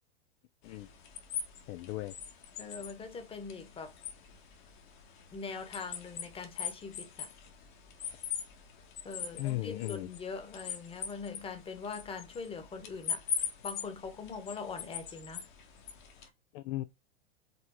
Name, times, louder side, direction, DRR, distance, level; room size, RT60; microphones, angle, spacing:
sound 1, 0.6-16.3, left 7 dB, 50° left, 1.8 m, -42 dB
voice 1, 1.7-2.1 9.4-10.1 16.5-16.8, left 17 dB, 35° left, 0.5 m, -36 dB
voice 2, 2.6-3.9 5.3-7.3 9.0-15.5, left 5 dB, 20° left, 1.3 m, -42 dB
5.3 x 4.0 x 4.7 m
figure-of-eight pair, 100°, 30 cm